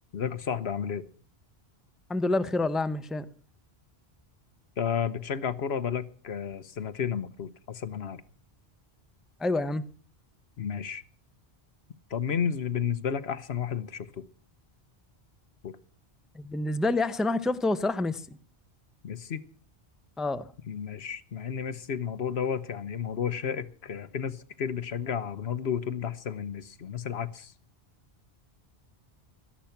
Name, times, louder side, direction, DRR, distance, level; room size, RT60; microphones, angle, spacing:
voice 1, 0.1-1.1 4.8-8.2 10.6-11.0 12.1-14.2 15.6-15.7 19.0-19.4 20.7-27.5, left 7 dB, 75° left, 1.2 m, -32 dB
voice 2, 2.1-3.3 9.4-9.8 16.3-18.4 20.2-20.5, left 2 dB, ahead, 0.6 m, -27 dB
17.5 x 13.0 x 5.8 m
omnidirectional pair, 1.1 m